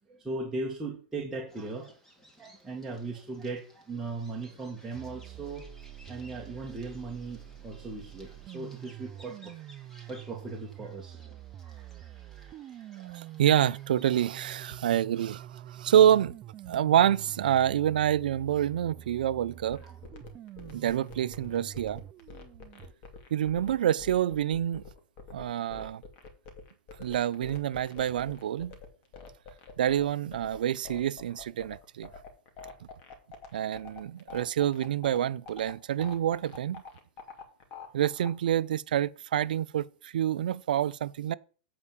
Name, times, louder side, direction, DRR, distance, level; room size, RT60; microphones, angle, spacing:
voice 1, 0.1-1.9 2.4-5.7 6.1-11.2 11.6-12.9 19.8-20.0, right 3 dB, 5° right, 1.6 m, -39 dB
Bird vocalization bird call bird song, 1.5-14.6, equal, 10° left, 2.0 m, -59 dB
sound 1, 4.9-22.9, right 12 dB, 25° right, 0.3 m, -46 dB
voice 2, 13.0-16.3 16.7-19.8 20.7-22.0 23.3-24.8 25.3-26.0 27.0-28.8 29.8-32.1 33.5-36.8 37.9-41.3, right 10 dB, 85° right, 0.5 m, -27 dB
sound 2, 19.7-38.5, left 4 dB, 40° left, 2.2 m, -46 dB
8.4 x 4.7 x 7.2 m
supercardioid pair, 145°, 5 cm